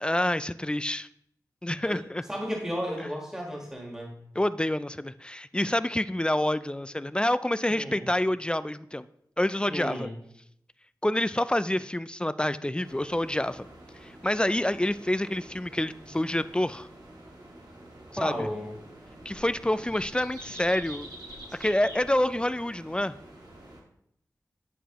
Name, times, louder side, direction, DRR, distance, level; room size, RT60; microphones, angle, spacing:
voice 1, 0.0-1.1 1.6-2.2 4.4-9.1 9.4-10.1 11.0-13.7 13.9-16.9 18.1-18.5 19.3-21.1 21.6-23.1, left 1 dB, 15° left, 14 dB, 0.3 m, -27 dB
voice 2, 2.3-4.2 7.7-8.0 9.7-10.1 18.2-18.7, equal, 10° right, -1 dB, 1.6 m, -33 dB
sound 1, 12.8-23.8, right 1 dB, 75° right, 1.7 m, -47 dB
10.0 x 4.7 x 3.0 m, 0.71 s
wide cardioid pair, 60°, 7 cm